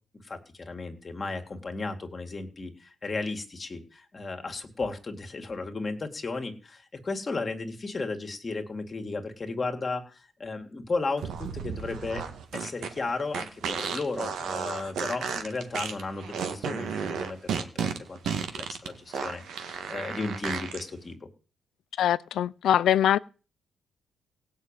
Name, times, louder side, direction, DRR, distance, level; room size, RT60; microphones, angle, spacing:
voice 1, 0.2-21.3, left 3 dB, 30° left, 2.2 m, -34 dB
sound 1, 11.2-20.8, right 7 dB, 75° right, 1.8 m, -33 dB
voice 2, 22.0-23.2, left 11 dB, 70° left, 0.6 m, -23 dB
16.5 x 6.2 x 9.0 m
cardioid pair, 90°, 0 cm